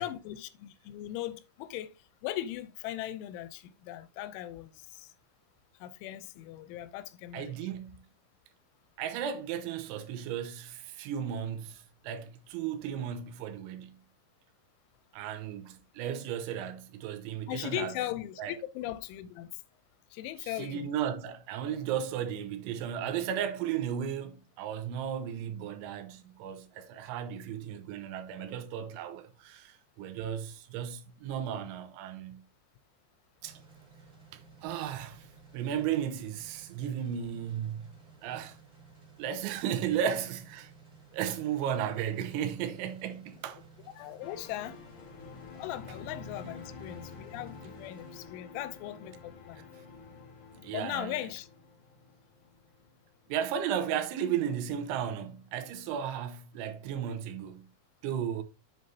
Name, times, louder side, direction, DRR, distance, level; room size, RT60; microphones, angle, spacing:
voice 1, 0.0-1.9 2.2-5.1 5.8-7.6 17.5-19.5 20.1-20.9 44.0-44.8 45.5-49.7 50.7-51.5, left 13 dB, 90° left, 3.2 m, -38 dB
voice 2, 7.3-8.0 9.0-14.0 15.1-17.9 18.4-18.6 20.4-32.4 33.4-33.6 34.3-35.3 35.5-37.9 38.2-38.6 39.2-40.7 41.1-43.6 50.5-51.3 53.3-57.7 58.0-58.4, right 9 dB, 85° right, 3.3 m, -35 dB
sound 1, 33.4-48.2, right 5 dB, 20° right, 3.9 m, -56 dB
sound 2, 44.2-53.4 53.6-53.8, left 4 dB, 60° left, 2.3 m, -49 dB
7.8 x 7.3 x 2.8 m
omnidirectional pair, 5.4 m